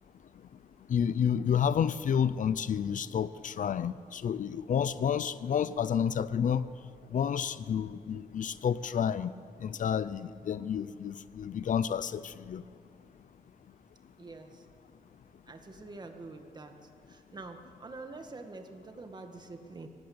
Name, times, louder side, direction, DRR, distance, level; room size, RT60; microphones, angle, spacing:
voice 1, 0.9-6.7 7.1-9.3 9.6-12.6, left 8 dB, 60° left, 16 dB, 0.6 m, -30 dB
voice 2, 14.2-14.6 15.5-16.8 17.1-19.9, right 3 dB, 30° right, 6 dB, 1.9 m, -46 dB
24.0 x 19.0 x 8.8 m, 2.4 s
wide cardioid pair, 170°, 15 cm